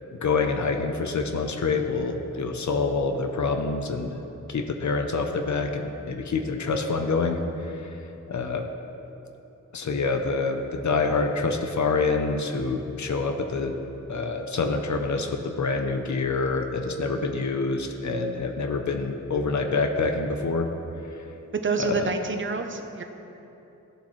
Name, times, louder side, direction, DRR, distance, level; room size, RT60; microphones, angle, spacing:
voice 1, 0.2-4.2 4.5-8.0 8.3-8.6 9.7-13.7 14.1-20.7 21.8-22.1, left 4 dB, 65° left, 5 dB, 0.7 m, -26 dB
voice 2, 21.6-23.0, right 4 dB, 40° right, 5 dB, 0.7 m, -28 dB
15.5 x 7.2 x 3.2 m, 3.0 s
wide cardioid pair, 120°, 31 cm